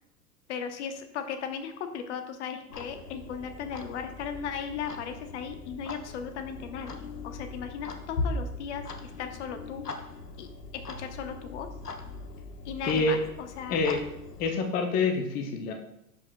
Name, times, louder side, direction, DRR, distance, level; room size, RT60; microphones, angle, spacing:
voice 1, 0.5-9.8 10.4-11.7 12.6-13.8, left 7 dB, 50° left, 7 dB, 0.9 m, -37 dB
Clock, 2.7-14.5, left 3 dB, 85° left, 0.8 m, -39 dB
voice 2, 12.8-13.2 13.7-14.0 14.4-15.7, left 3 dB, 20° left, 4 dB, 0.6 m, -26 dB
10.5 x 4.9 x 2.2 m, 0.80 s
figure-of-eight pair, 90°, 46 cm